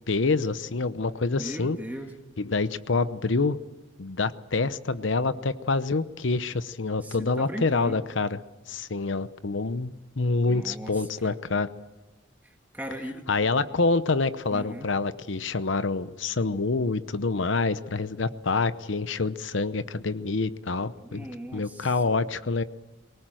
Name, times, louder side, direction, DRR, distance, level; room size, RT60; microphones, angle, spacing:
voice 1, 0.1-1.8 2.4-3.6 4.0-8.4 8.7-11.7 13.3-21.2 21.5-22.6, left 3 dB, 75° left, 14 dB, 0.8 m, -27 dB
voice 2, 1.4-2.1 7.0-8.0 10.5-11.3 12.4-13.3 14.5-14.9 21.0-21.9, right 1 dB, 10° right, 3 dB, 1.6 m, -38 dB
23.5 x 19.0 x 7.7 m, 1.1 s
head